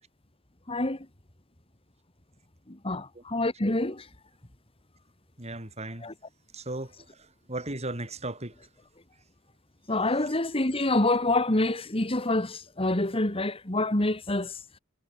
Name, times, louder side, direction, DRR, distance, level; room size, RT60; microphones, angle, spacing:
voice 1, 0.7-1.0 2.8-4.0 6.0-6.1 9.9-14.5, left 2 dB, 30° left, 2.1 m, -26 dB
voice 2, 5.4-6.1 6.5-6.9 7.5-8.5, right 2 dB, 30° right, 4.5 m, -35 dB
head